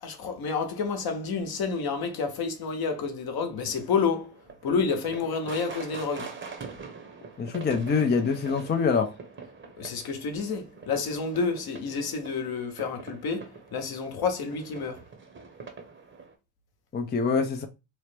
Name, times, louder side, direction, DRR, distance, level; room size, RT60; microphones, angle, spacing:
voice 1, 0.0-4.3 4.6-6.3 9.8-15.0, left 5 dB, 55° left, 0.9 m, -29 dB
sound 1, 3.7-16.3, right 4 dB, 25° right, 0.8 m, -44 dB
voice 2, 7.4-9.1 16.9-17.7, left 5 dB, 25° left, 0.4 m, -25 dB
3.0 x 2.1 x 3.2 m
supercardioid pair, 75°, 44 cm